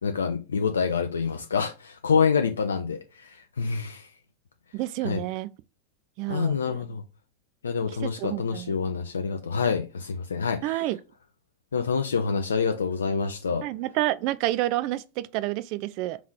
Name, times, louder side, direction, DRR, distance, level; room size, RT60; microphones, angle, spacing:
voice 1, 0.0-4.1 5.0-5.2 6.3-7.0 7.6-10.7 11.7-13.7, left 5 dB, 70° left, 0.4 m, -27 dB
voice 2, 4.7-5.5 6.2-6.8 7.9-8.8 10.6-11.0 13.6-16.2, right 16 dB, 45° right, 0.3 m, -29 dB
3.7 x 3.0 x 4.8 m
figure-of-eight pair, 90°, 0 cm